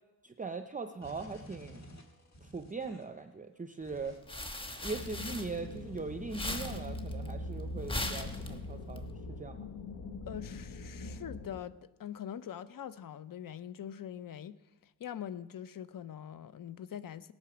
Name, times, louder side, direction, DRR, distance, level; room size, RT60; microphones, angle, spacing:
voice 1, 0.2-1.8 2.4-4.2 4.8-9.0 9.4-9.7, right 4 dB, 20° right, 0.5 m, -40 dB
sound 1, 1.0-3.2 3.8-4.2 4.5-6.4, equal, 40° left, 2.0 m, -54 dB
sound 2, 3.9-6.0 6.3-9.0, left 1 dB, 15° left, 1.2 m, -39 dB
sound 3, 4.9-11.6, left 2 dB, 85° left, 1.4 m, -42 dB
voice 2, 10.3-17.3, left 9 dB, 55° left, 0.7 m, -43 dB
18.5 x 8.9 x 6.1 m
wide cardioid pair, 150°, 39 cm